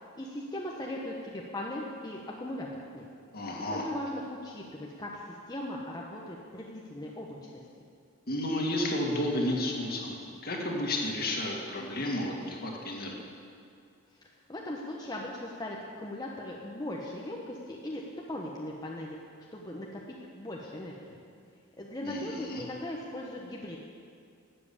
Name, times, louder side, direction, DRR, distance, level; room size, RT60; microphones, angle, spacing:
voice 1, 0.2-2.7 2.9-3.1 3.4-7.6 14.5-19.2 19.5-20.0 20.3-21.2 21.8-23.8, left 1 dB, 20° left, -2 dB, 1.0 m, -39 dB
voice 2, 3.3-3.9 8.3-10.2 10.4-13.1 22.0-22.6, left 1 dB, 45° left, 0 dB, 2.1 m, -32 dB
12.5 x 7.7 x 8.5 m, 2.4 s
head